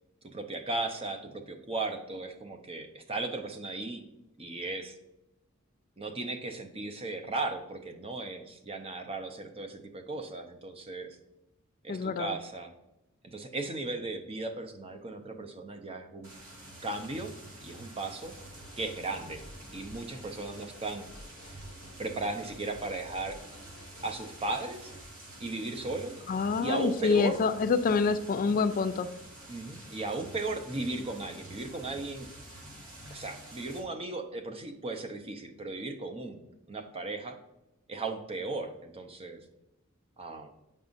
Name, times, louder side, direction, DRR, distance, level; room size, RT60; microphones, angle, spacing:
voice 1, 0.2-4.0 4.4-5.0 6.0-11.1 11.8-12.7 13.2-16.3 16.8-17.3 17.6-18.3 18.8-19.4 19.7-21.1 22.0-23.4 24.0-24.9 25.4-26.1 26.6-27.4 29.5-32.3 33.1-37.4 37.9-39.4 40.2-40.5, right 2 dB, 25° right, 5 dB, 0.7 m, -36 dB
voice 2, 11.9-12.4 26.3-29.1, left 4 dB, 40° left, 10 dB, 0.3 m, -27 dB
sound 1, 16.2-33.8, right 1 dB, 75° right, 2.2 m, -49 dB
sound 2, 18.2-25.1, equal, 85° left, 1.0 m, -52 dB
8.1 x 5.4 x 2.6 m, 0.88 s
head